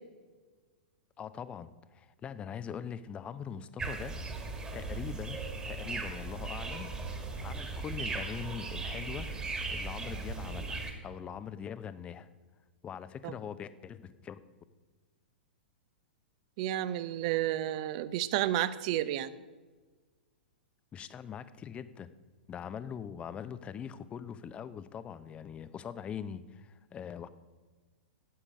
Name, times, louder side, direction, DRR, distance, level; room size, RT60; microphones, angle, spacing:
voice 1, 1.2-4.2 4.7-5.4 5.6-6.9 7.4-9.3 9.7-12.3 12.8-14.4 20.9-22.1 22.5-27.3, left 8 dB, 20° left, 14 dB, 0.6 m, -42 dB
sound 1, 3.8-10.9, right 3 dB, 15° right, 1.7 m, -38 dB
voice 2, 16.6-19.3, right 13 dB, 45° right, 16 dB, 0.6 m, -31 dB
10.5 x 8.4 x 6.5 m, 1.4 s
figure-of-eight pair, 105°, 6 cm